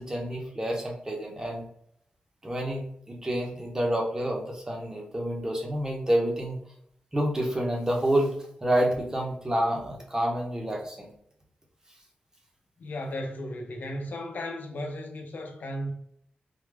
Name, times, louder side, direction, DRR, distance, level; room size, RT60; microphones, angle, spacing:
voice 1, 0.0-1.7 2.4-6.6 7.1-8.4 8.6-11.1, right 1 dB, 20° right, 1.0 m, -28 dB
voice 2, 12.8-15.9, left 1 dB, 75° left, 0.7 m, -35 dB
3.7 x 2.2 x 3.3 m
wide cardioid pair, 105°, 3 cm